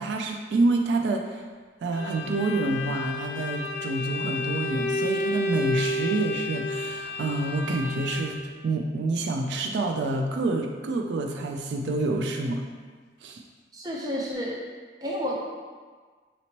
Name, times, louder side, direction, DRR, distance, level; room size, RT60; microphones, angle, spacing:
voice 1, 0.0-1.4 1.8-8.4 8.6-12.6 13.2-13.4, right 2 dB, 80° right, 3 dB, 0.3 m, -27 dB
Bowed string instrument, 1.9-8.5, left 1 dB, 90° left, 0.3 m, -31 dB
voice 2, 13.7-14.5 15.0-15.4, equal, 20° right, -4 dB, 0.5 m, -30 dB
4.2 x 2.9 x 2.8 m, 1.5 s
head